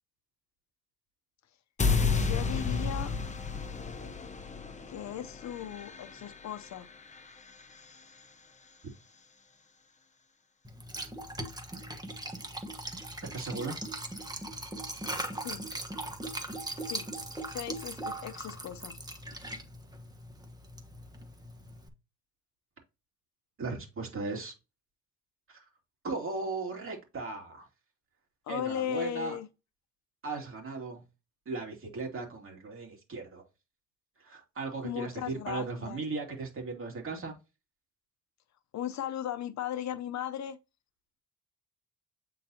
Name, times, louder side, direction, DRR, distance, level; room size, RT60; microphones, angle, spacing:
sound 1, 1.8-8.0, left 4 dB, 25° left, 0.9 m, -32 dB
voice 1, 2.1-3.2 4.9-6.9 15.3-15.6 16.8-17.1 17.5-19.0 28.5-29.5 34.8-36.0 38.7-40.6, left 11 dB, 65° left, 0.8 m, -37 dB
Liquid, 10.6-21.9, right 1 dB, 15° right, 1.3 m, -40 dB
voice 2, 13.3-13.8 23.6-24.5 25.5-25.6 26.0-27.7 28.5-29.4 30.2-31.0 31.5-33.4 34.2-37.4, right 3 dB, 45° right, 2.6 m, -37 dB
8.6 x 4.0 x 2.8 m
cardioid pair, 90°, 30 cm